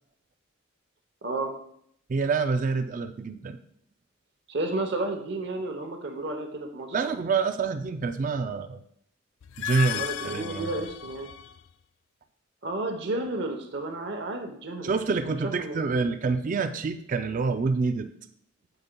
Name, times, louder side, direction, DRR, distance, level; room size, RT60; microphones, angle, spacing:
voice 1, 1.2-1.5 4.5-7.1 9.9-11.3 12.6-15.0 15.4-15.8, right 2 dB, 60° right, 4 dB, 0.8 m, -32 dB
voice 2, 2.1-3.6 6.9-8.8 9.6-10.8 14.8-18.1, right 4 dB, 40° right, 9 dB, 0.3 m, -27 dB
sound 1, 9.4-11.7, left 10 dB, 90° left, 0.4 m, -35 dB
8.7 x 8.0 x 2.2 m, 0.69 s
head